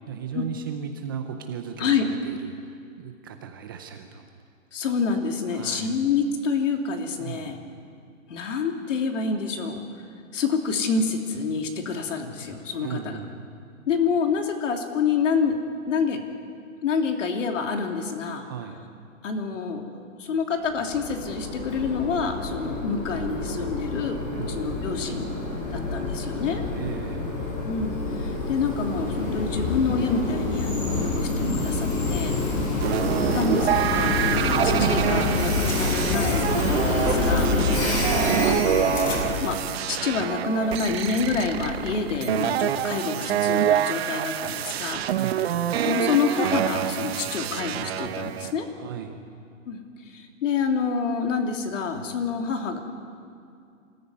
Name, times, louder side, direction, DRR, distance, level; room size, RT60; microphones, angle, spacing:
voice 1, 0.1-4.3 5.5-6.0 7.2-7.6 12.8-13.4 18.4-18.8 24.3-24.5 26.7-27.3 32.5-33.1 37.6-38.0 45.1-45.7 48.7-49.2, right 8 dB, 15° right, 6 dB, 0.5 m, -37 dB
voice 2, 4.7-7.6 8.3-9.8 10.3-13.2 13.9-15.5 15.9-16.2 16.8-18.4 19.2-24.2 24.5-25.3 25.7-26.6 27.6-32.4 33.3-37.5 38.4-39.6 39.9-45.0 45.8-48.7 49.7-49.8 50.1-52.8, left 5 dB, 65° left, 4 dB, 3.0 m, -27 dB
Train, 20.7-39.4, left 2 dB, 40° left, 6.1 m, -27 dB
sound 1, 32.8-48.5, right 10 dB, 50° right, 1.1 m, -26 dB
sound 2, 34.3-35.1 35.4-36.0 36.6-40.2, left 3 dB, 85° left, 5.5 m, -39 dB
25.5 x 14.5 x 9.6 m, 2.4 s
hypercardioid pair, 160°, 41 cm